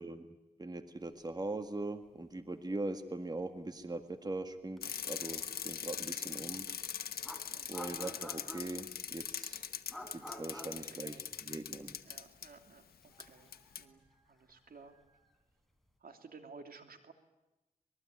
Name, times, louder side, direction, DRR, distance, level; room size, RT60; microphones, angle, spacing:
voice 1, 0.0-6.7 7.7-9.6 10.1-12.0, right 2 dB, 25° right, 8 dB, 1.7 m, -41 dB
sound 1, 2.1-2.2 2.4-2.6 4.8-4.9 6.6-6.7 7.2-9.0 9.9-11.9 12.1-12.3 13.0-15.3, left 1 dB, ahead, 4.0 m, -50 dB
Bicycle, 4.8-12.5 13.2-13.3 13.5-13.8, left 8 dB, 90° left, 1.2 m, -41 dB
voice 2, 7.5-7.8 10.7-11.2 12.0-13.5 13.8-15.0 16.0-17.1, right 4 dB, 70° right, 6 dB, 2.9 m, -55 dB
25.5 x 20.5 x 9.6 m, 1.0 s
cardioid pair, 75°, 15 cm